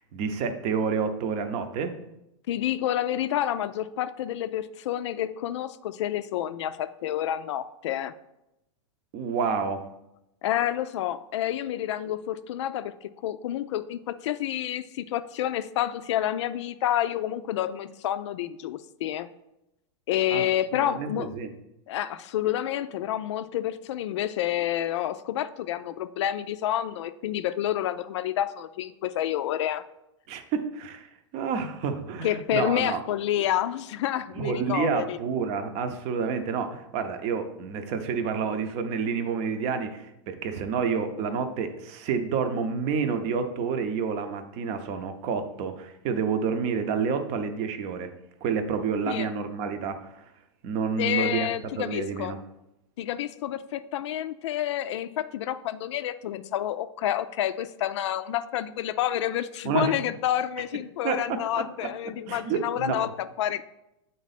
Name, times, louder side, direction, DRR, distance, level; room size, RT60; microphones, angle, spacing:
voice 1, 0.0-2.0 9.1-9.9 20.3-20.4 20.7-21.5 30.3-33.0 34.4-48.1 48.4-50.2 50.6-51.5 51.7-52.4 59.6-59.9 61.0-61.9 62.3-63.1, right 6 dB, 40° right, 8 dB, 0.7 m, -29 dB
voice 2, 2.5-8.1 10.4-19.3 20.1-21.3 21.9-29.8 32.2-35.2 49.1-49.3 51.0-52.4 53.0-63.6, left 12 dB, 70° left, 11 dB, 0.4 m, -29 dB
7.3 x 3.9 x 4.1 m, 0.88 s
supercardioid pair, 135°, 16 cm